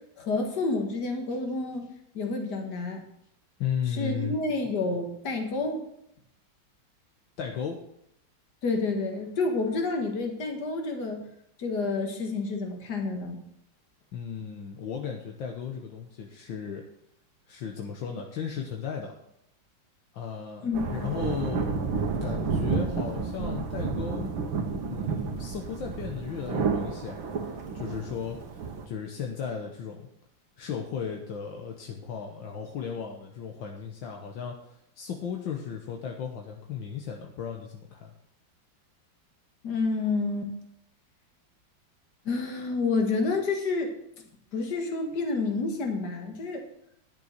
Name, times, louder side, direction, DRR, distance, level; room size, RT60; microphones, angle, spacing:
voice 1, 0.2-1.9 2.1-3.0 4.0-5.8 8.6-11.2 11.6-13.4 20.6-21.0 39.6-40.5 42.3-43.9 44.5-46.7, left 3 dB, 55° left, 3 dB, 2.2 m, -29 dB
voice 2, 3.6-4.4 7.4-7.8 14.1-16.8 17.5-19.2 20.1-21.7 22.2-24.3 24.9-30.1 30.6-38.1, left 7 dB, 75° left, 1 dB, 1.8 m, -35 dB
sound 1, 20.7-28.9, right 5 dB, 80° right, 2.0 m, -31 dB
11.0 x 6.8 x 6.6 m, 0.75 s
omnidirectional pair, 2.1 m